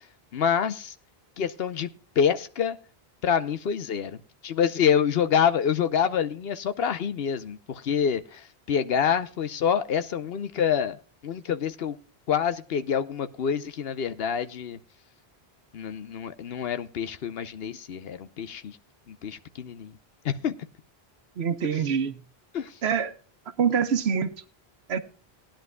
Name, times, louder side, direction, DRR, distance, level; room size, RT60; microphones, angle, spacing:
voice 1, 0.3-0.9 1.4-1.9 2.2-2.8 3.2-4.2 4.4-11.0 11.2-12.0 12.3-14.8 15.7-18.8 19.1-19.9 20.2-20.6 22.5-22.7, left 7 dB, 70° left, 1.0 m, -26 dB
voice 2, 21.4-22.2 22.8-23.1 23.5-24.4 24.9-25.0, right 7 dB, 85° right, 1.2 m, -25 dB
19.0 x 10.5 x 2.2 m
omnidirectional pair, 1.1 m